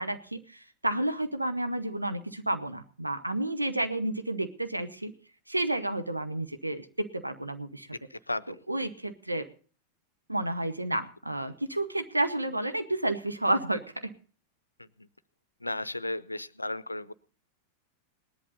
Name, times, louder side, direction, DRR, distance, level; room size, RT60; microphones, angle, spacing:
voice 1, 0.0-5.1 5.5-7.9 8.7-9.5 10.3-14.1, right 1 dB, 85° right, 9 dB, 1.1 m, -31 dB
voice 2, 8.1-8.6 15.0-15.1 15.6-17.1, left 2 dB, 85° left, 18 dB, 0.6 m, -34 dB
19.0 x 11.0 x 4.0 m, 0.42 s
figure-of-eight pair, 90°, 0 cm